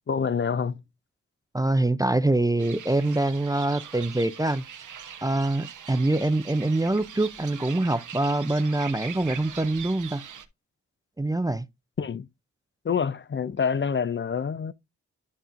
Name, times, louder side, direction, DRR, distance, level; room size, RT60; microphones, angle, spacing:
voice 1, 0.1-0.8 12.0-12.3 12.8-14.7, left 6 dB, 40° left, 0.5 m, -27 dB
voice 2, 1.5-4.6 5.2-10.2 11.2-11.7, right 2 dB, 10° right, 0.4 m, -24 dB
sound 1, 2.6-10.5, right 8 dB, 85° right, 1.0 m, -42 dB
11.5 x 5.4 x 2.5 m
cardioid pair, 75°, 30 cm